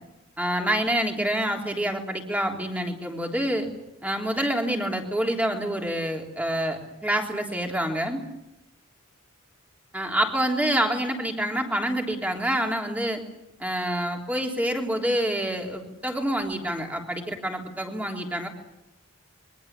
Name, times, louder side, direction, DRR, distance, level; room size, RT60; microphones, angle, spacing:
voice 1, 0.4-3.7 4.0-8.2 9.9-13.2 13.6-18.5, right 1 dB, 5° right, 2 dB, 3.5 m, -27 dB
27.5 x 23.5 x 8.3 m, 0.89 s
head